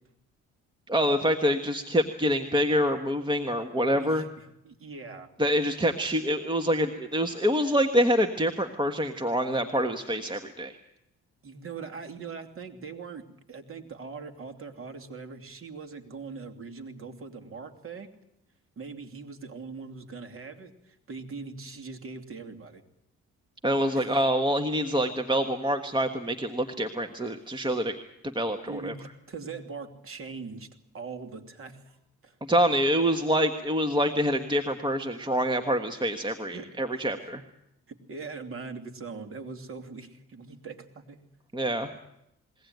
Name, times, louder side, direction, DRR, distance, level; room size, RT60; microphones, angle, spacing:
voice 1, 0.9-4.2 5.4-10.8 23.6-28.0 28.3-28.9 32.5-37.4 41.5-41.9, equal, 15° right, 7 dB, 1.5 m, -26 dB
voice 2, 4.6-5.3 11.4-18.1 18.8-22.8 23.9-24.0 28.7-30.7 30.9-32.0 32.2-32.3 36.5-36.7 36.9-37.1 37.9-41.2, right 4 dB, 45° right, 6 dB, 3.0 m, -41 dB
21.5 x 18.0 x 9.4 m, 0.83 s
cardioid pair, 90°, 30 cm